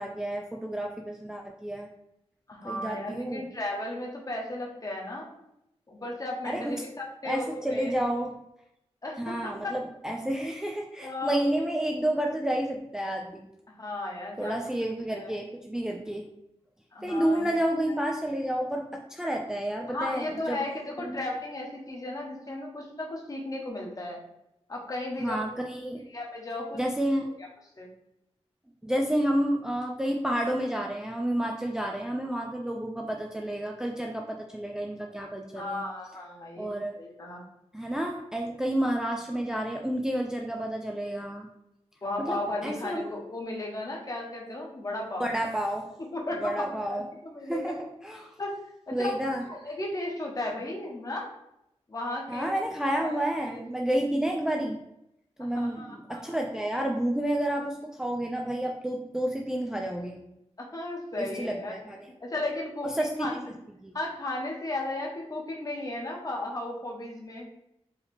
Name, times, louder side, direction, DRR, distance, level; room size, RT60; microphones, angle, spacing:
voice 1, 0.0-1.9 2.6-3.5 6.4-6.7 7.2-8.3 9.2-13.5 14.4-16.3 17.0-20.6 21.0-21.2 25.2-26.0 26.7-27.3 28.8-35.8 36.6-36.9 37.7-41.5 42.2-43.1 45.2-45.9 46.4-47.0 47.4-48.3 48.9-49.4 52.3-54.8 55.4-60.2 61.2-62.1 62.8-63.1 63.8-64.0, right 1 dB, 5° right, 1 dB, 0.3 m, -30 dB
voice 2, 2.5-5.3 5.9-7.9 9.0-9.7 11.0-11.4 13.7-14.6 15.1-15.3 16.9-17.6 19.9-24.2 24.7-25.4 26.1-26.8 27.4-27.5 27.8-27.9 35.6-36.7 37.0-37.4 42.0-45.3 46.1-47.7 48.4-48.5 48.9-49.1 49.5-51.3 51.9-52.5 52.9-53.6 55.4-56.4 60.6-61.7 62.2-63.5 63.9-67.5, left 2 dB, 35° left, -1 dB, 1.0 m, -35 dB
4.6 x 2.8 x 3.5 m, 0.83 s
wide cardioid pair, 140°, 11 cm